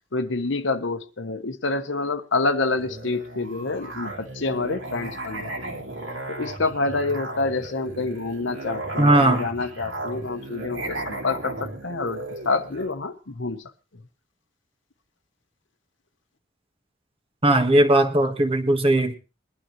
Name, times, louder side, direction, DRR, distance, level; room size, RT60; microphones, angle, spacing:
voice 1, 0.1-5.5 5.8-5.9 6.3-13.6, left 3 dB, 65° left, 1.0 m, -27 dB
Musical instrument, 2.8-12.9, right 2 dB, 75° right, 3.1 m, -35 dB
voice 2, 9.0-9.5 17.4-19.2, right 1 dB, 30° right, 1.5 m, -18 dB
21.0 x 11.5 x 3.1 m
head